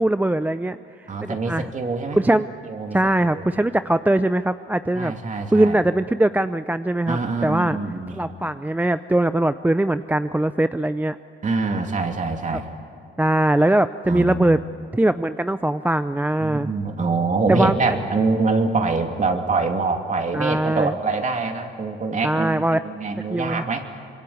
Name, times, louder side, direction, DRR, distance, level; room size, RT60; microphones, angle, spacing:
voice 1, 0.0-1.7 2.2-2.5 2.9-5.1 5.5-7.8 8.1-11.2 13.2-14.6 14.9-16.7 17.5-18.0 20.3-20.9 22.2-22.8 23.3-23.6, right 1 dB, 10° right, 12 dB, 0.5 m, -21 dB
voice 2, 1.1-2.2 2.6-3.0 3.2-3.4 4.9-5.8 7.1-8.2 11.4-12.6 14.1-14.5 16.4-23.9, right 3 dB, 40° right, 4 dB, 2.8 m, -24 dB
25.0 x 22.5 x 8.6 m, 2.6 s
cardioid pair, 90°, 20 cm